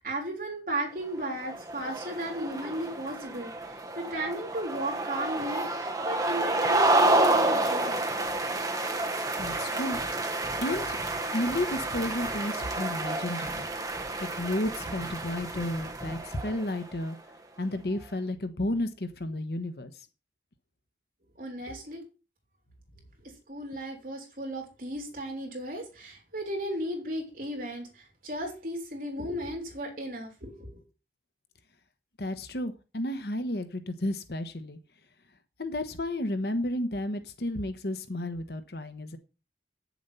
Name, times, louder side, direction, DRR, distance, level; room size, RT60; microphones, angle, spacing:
voice 1, 0.0-8.1 21.4-22.0 23.2-30.8, right 1 dB, 50° right, 0 dB, 3.6 m, -35 dB
sound 1, 1.3-16.9, right 2 dB, 20° right, 1.0 m, -29 dB
voice 2, 9.4-10.0 10.6-11.0 11.3-13.7 14.3-17.2 17.6-20.1 32.2-34.8 35.6-39.2, left 1 dB, 65° left, 9 dB, 1.0 m, -32 dB
9.6 x 7.2 x 5.6 m, 0.32 s
head